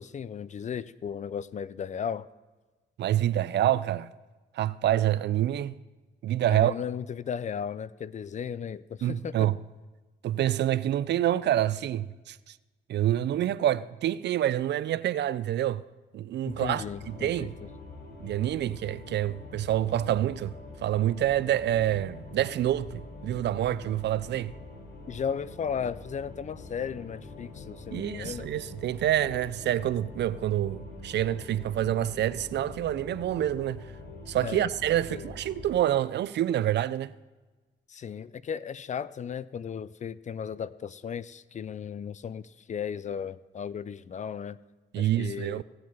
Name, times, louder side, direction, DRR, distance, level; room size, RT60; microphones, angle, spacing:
voice 1, 0.0-2.3 6.5-9.5 16.4-17.7 25.1-28.5 34.4-34.7 35.1-35.3 37.9-44.6 45.0-45.6, left 7 dB, 35° left, 0.4 m, -35 dB
voice 2, 3.0-4.1 4.5-5.7 6.2-6.7 9.0-9.6 10.2-12.5 12.9-15.8 16.1-17.5 18.2-20.5 20.8-24.5 27.9-33.8 34.3-37.1 44.9-45.6, right 12 dB, 60° right, 0.4 m, -27 dB
sound 1, 16.5-35.8, left 2 dB, 55° left, 3.5 m, -45 dB
17.0 x 7.7 x 5.5 m
cardioid pair, 90°, 20 cm